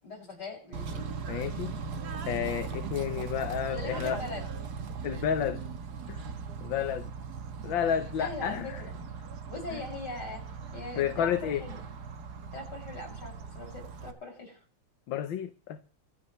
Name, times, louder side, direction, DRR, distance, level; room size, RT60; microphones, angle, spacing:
voice 1, 0.0-1.1 3.7-4.5 8.2-9.0 9.5-10.4 10.7-11.8 12.5-14.6, left 2 dB, 55° left, 0 dB, 7.4 m, -41 dB
Bird / Train, 0.7-14.1, right 5 dB, 55° right, 1.8 m, -39 dB
voice 2, 1.3-1.7 2.3-4.2 5.0-5.6 6.1-6.2 6.6-7.1 7.6-8.8 9.7-9.8 11.0-11.6 15.1-15.8, left 9 dB, 75° left, 9 dB, 1.7 m, -31 dB
26.5 x 9.7 x 3.2 m, 0.40 s
omnidirectional pair, 2.2 m